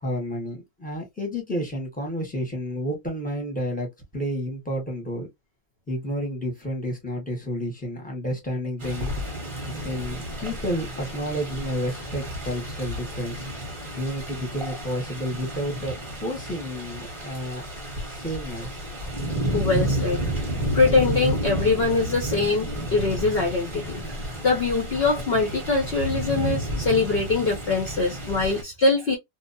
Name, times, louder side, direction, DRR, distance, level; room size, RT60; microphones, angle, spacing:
voice 1, 0.0-5.3 5.9-9.1 9.7-13.5 14.0-17.6 18.1-18.8, equal, 10° left, 0.6 m, -30 dB
sound 1, 8.8-28.6, right 1 dB, 25° right, 0.8 m, -31 dB
voice 2, 19.5-20.2 20.7-29.2, left 3 dB, 65° left, 0.6 m, -23 dB
2.7 x 2.0 x 2.5 m
omnidirectional pair, 1.7 m